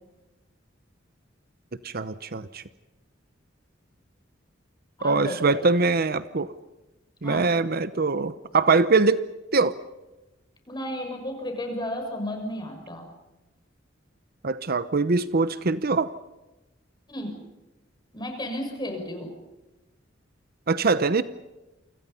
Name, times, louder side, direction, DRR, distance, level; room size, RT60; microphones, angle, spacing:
voice 1, 1.8-2.6 5.0-6.5 7.2-9.2 9.5-9.7 14.4-16.1 20.7-21.2, right 4 dB, 50° right, 14 dB, 0.9 m, -23 dB
voice 2, 5.0-5.8 7.2-7.5 10.7-13.1 17.1-17.4 18.1-19.3, left 1 dB, 20° left, 4 dB, 6.5 m, -33 dB
29.0 x 25.5 x 5.6 m, 1.1 s
head